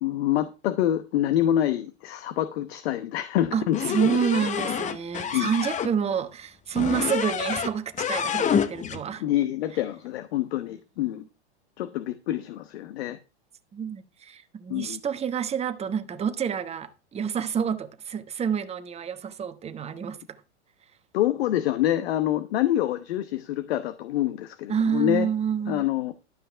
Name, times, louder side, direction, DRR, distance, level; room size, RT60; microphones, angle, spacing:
voice 1, 0.0-4.0 4.4-4.5 5.3-5.5 9.2-11.2 11.8-13.2 14.7-15.0 21.1-25.3 25.7-26.1, left 12 dB, 65° left, 1.0 m, -26 dB
voice 2, 3.5-9.2 13.7-20.4 24.7-25.8, right 7 dB, 20° right, 1.1 m, -28 dB
sound 1, 3.7-5.9 6.7-7.7 8.0-9.0, left 8 dB, 20° left, 0.9 m, -27 dB
12.0 x 5.4 x 5.6 m
hypercardioid pair, 110°, 34 cm